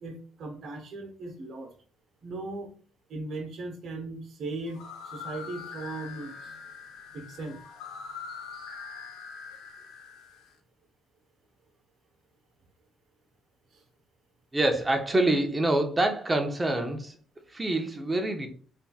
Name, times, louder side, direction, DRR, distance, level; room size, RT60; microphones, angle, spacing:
voice 1, 0.0-1.7 2.2-2.7 3.1-6.5 7.1-7.6 13.7-13.8, right 2 dB, 55° right, 5 dB, 0.9 m, -38 dB
sound 1, 4.7-10.5, left 5 dB, 90° left, 0.7 m, -43 dB
voice 2, 14.5-17.2 17.5-18.5, right 2 dB, 15° right, 5 dB, 0.6 m, -26 dB
4.1 x 3.4 x 2.3 m, 0.42 s
cardioid pair, 140°, 0 cm